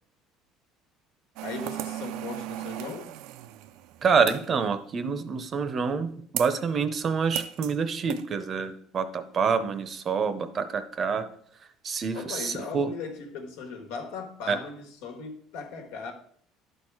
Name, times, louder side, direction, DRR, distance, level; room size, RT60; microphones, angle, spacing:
voice 1, 1.4-3.1 12.1-16.1, left 5 dB, 85° left, 1.6 m, -38 dB
sound 1, 1.4-4.6 6.4-6.6 7.4-7.8 8.1-8.2, right 14 dB, 75° right, 0.4 m, -36 dB
voice 2, 4.0-11.3 11.8-12.9 14.5-14.6, right 5 dB, 30° right, 0.7 m, -27 dB
11.5 x 4.5 x 4.8 m
cardioid pair, 155°, 0 cm